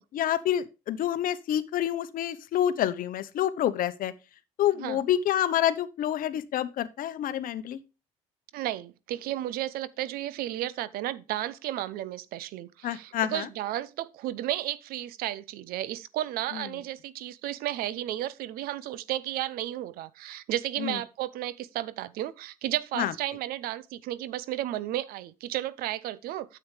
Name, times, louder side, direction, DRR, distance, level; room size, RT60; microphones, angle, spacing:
voice 1, 0.1-4.1 4.6-7.8 12.8-13.5 16.5-16.7 20.8-21.0 23.0-23.1, left 11 dB, 60° left, 0.9 m, -28 dB
voice 2, 8.5-26.6, right 13 dB, 70° right, 0.7 m, -33 dB
9.6 x 7.7 x 3.2 m
supercardioid pair, 65°, 16 cm